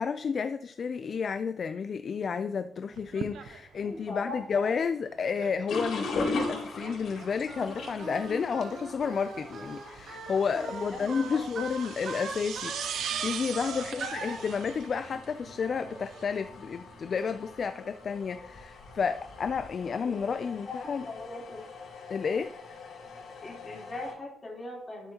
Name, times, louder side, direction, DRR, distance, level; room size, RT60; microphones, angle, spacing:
voice 1, 0.0-21.1 22.1-22.5, left 6 dB, 40° left, 0.3 m, -31 dB
sound 1, 2.9-16.2, right 8 dB, 85° right, 0.8 m, -42 dB
voice 2, 3.8-4.6 10.5-11.5 13.8-14.5 20.0-20.1 20.4-21.6 23.4-25.1, left 2 dB, 20° left, 3.4 m, -41 dB
sound 2, 5.7-24.1, left 3 dB, 70° left, 4.0 m, -41 dB
Singing, 7.5-14.4, right 3 dB, 50° right, 2.9 m, -40 dB
12.5 x 7.3 x 2.9 m
wide cardioid pair, 170°, 0 cm